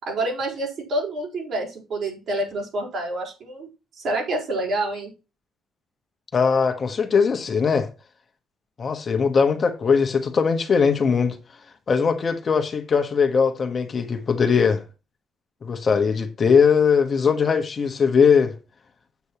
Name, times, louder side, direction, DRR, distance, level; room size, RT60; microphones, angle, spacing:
voice 1, 0.0-3.7 4.0-5.1, right 2 dB, 60° right, 4.9 m, -27 dB
voice 2, 6.3-7.9 8.8-11.4 11.9-14.8 15.6-18.5, left 6 dB, 35° left, 1.4 m, -20 dB
8.4 x 8.0 x 4.3 m
cardioid pair, 125°, 0 cm